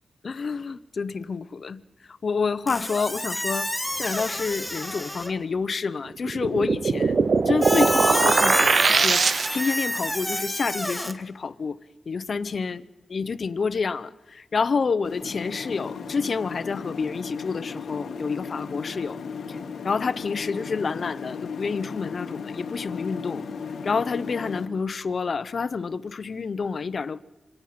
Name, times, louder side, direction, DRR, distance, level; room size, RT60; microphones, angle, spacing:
voice 1, 0.2-1.8 2.2-3.7 4.0-7.2 7.5-11.8 12.1-12.8 13.1-19.2 19.8-23.4 23.8-27.2, left 5 dB, 55° left, 0.8 m, -28 dB
Squeak, 2.7-5.4 7.6-11.1, left 1 dB, ahead, 1.5 m, -28 dB
sound 1, 6.2-9.9, right 5 dB, 55° right, 0.7 m, -21 dB
sound 2, 15.0-24.7, left 5 dB, 85° left, 1.3 m, -35 dB
26.0 x 18.0 x 5.9 m
wide cardioid pair, 110°, 0 cm